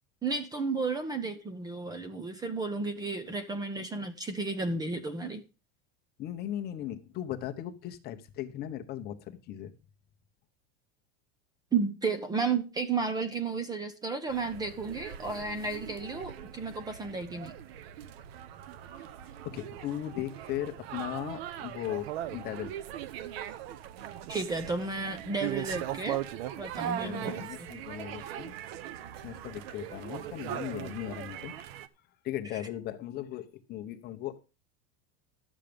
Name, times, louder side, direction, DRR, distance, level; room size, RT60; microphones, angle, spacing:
voice 1, 0.2-5.4 11.7-17.5 24.3-26.2 26.6-27.7 32.5-32.6, right 4 dB, 10° right, 0.8 m, -33 dB
voice 2, 6.2-9.7 19.4-22.7 26.9-28.5 29.2-31.6 32.2-34.4, left 12 dB, 30° left, 1.0 m, -37 dB
sound 1, 14.3-31.9, right 11 dB, 70° right, 1.0 m, -40 dB
12.0 x 7.4 x 5.2 m
supercardioid pair, 170°, 31 cm